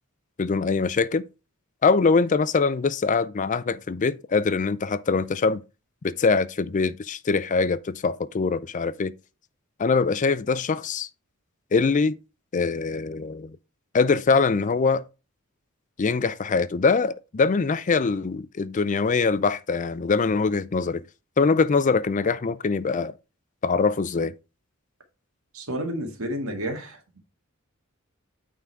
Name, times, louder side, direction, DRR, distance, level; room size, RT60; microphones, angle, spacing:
voice 1, 0.4-1.2 1.8-5.6 6.0-9.1 9.8-11.1 11.7-12.2 12.5-13.6 13.9-15.0 16.0-21.0 21.4-23.1 23.6-24.3, left 4 dB, 35° left, 0.4 m, -23 dB
voice 2, 25.5-27.2, right 1 dB, 85° right, 1.9 m, -31 dB
9.0 x 3.9 x 4.5 m
head